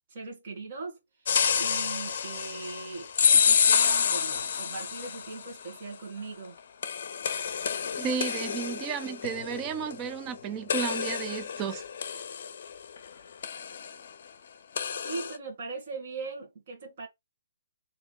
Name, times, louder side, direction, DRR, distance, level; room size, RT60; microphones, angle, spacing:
voice 1, 0.1-1.0 1.6-6.6 15.0-17.1, right 4 dB, 40° right, 1.7 m, -39 dB
sound 1, 1.3-5.5 6.8-10.3 10.7-13.1 13.4-13.9 14.8-15.4, left 7 dB, 50° left, 0.6 m, -28 dB
voice 2, 8.0-11.8, right 7 dB, 20° right, 0.5 m, -33 dB
3.4 x 3.0 x 4.3 m
hypercardioid pair, 160°, 0 cm